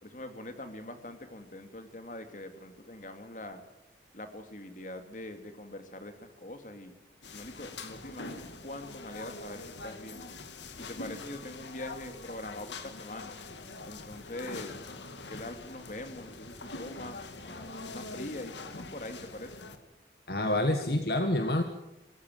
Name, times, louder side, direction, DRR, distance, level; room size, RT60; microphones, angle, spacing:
voice 1, 0.0-3.6 4.1-6.9 7.3-10.2 10.7-13.4 13.8-14.8 15.3-19.5, left 1 dB, 45° left, 7 dB, 2.5 m, -43 dB
sound 1, 7.2-19.8, left 3 dB, 90° left, 2.0 m, -44 dB
voice 2, 20.3-21.6, left 1 dB, 60° left, 6 dB, 1.6 m, -27 dB
23.5 x 14.5 x 9.4 m, 0.98 s
head